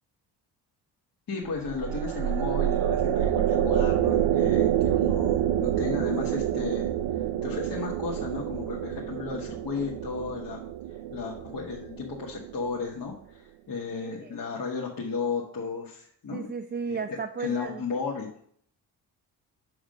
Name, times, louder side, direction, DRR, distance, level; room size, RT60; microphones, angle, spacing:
voice 1, 1.3-10.6 10.9-16.4 16.9-18.3, left 5 dB, 45° left, -3 dB, 1.5 m, -34 dB
sound 1, 1.5-12.9, right 11 dB, 70° right, 0.7 m, -27 dB
voice 2, 13.9-14.3 16.3-17.8, right 5 dB, 25° right, 6 dB, 0.4 m, -34 dB
5.1 x 5.0 x 6.4 m, 0.62 s
supercardioid pair, 70°, 46 cm